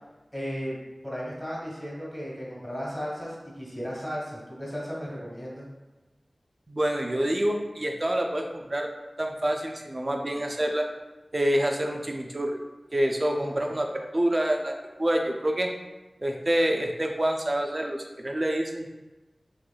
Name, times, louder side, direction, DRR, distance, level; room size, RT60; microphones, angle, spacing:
voice 1, 0.3-0.8 1.0-5.6 13.3-13.7, equal, 15° left, -6 dB, 1.4 m, -35 dB
voice 2, 6.7-8.9 9.2-10.9 11.3-12.6 12.9-14.7 15.0-15.7 16.2-18.9, right 1 dB, 40° right, 2 dB, 0.4 m, -27 dB
3.1 x 3.1 x 2.3 m, 1.1 s
wide cardioid pair, 45°, 0 cm